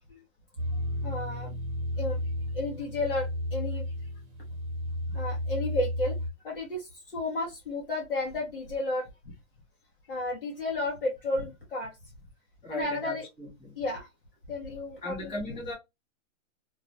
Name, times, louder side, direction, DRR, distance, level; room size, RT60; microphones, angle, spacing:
sound 1, 0.6-6.3, left 1 dB, 90° right, 0.8 m, -33 dB
voice 1, 1.0-1.6 2.0-2.2 2.5-3.8 5.1-6.2 6.4-9.1 10.1-11.9 12.7-13.3 13.8-14.1 14.5-15.6, left 2 dB, 45° left, 0.7 m, -32 dB
voice 2, 12.6-13.8 15.0-15.7, left 1 dB, 10° left, 0.9 m, -37 dB
2.3 x 2.1 x 2.5 m
hypercardioid pair, 180°, 40 cm